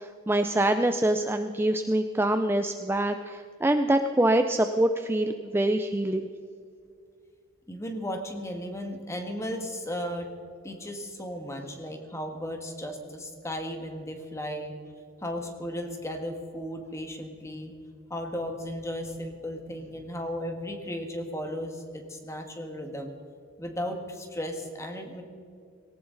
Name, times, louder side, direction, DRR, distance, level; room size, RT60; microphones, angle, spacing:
voice 1, 0.0-6.3, right 1 dB, 10° right, 7 dB, 0.4 m, -25 dB
voice 2, 7.7-10.3 10.6-14.7 15.2-17.7 18.1-23.1 23.6-25.2, equal, 15° left, 4 dB, 1.7 m, -35 dB
18.5 x 18.0 x 4.0 m, 2.3 s
head